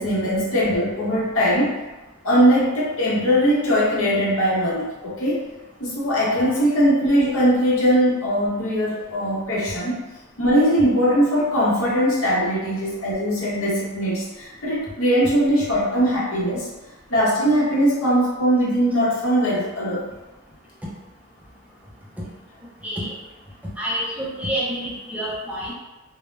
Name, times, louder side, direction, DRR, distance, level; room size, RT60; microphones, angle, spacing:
voice 1, 0.0-1.8 2.2-5.4 5.8-10.0 10.4-16.7 17.1-20.1, equal, 75° left, -7 dB, 0.8 m, -20 dB
voice 2, 22.8-23.1 23.8-25.7, equal, 5° right, -6 dB, 0.4 m, -28 dB
2.1 x 2.0 x 3.1 m, 1.1 s
head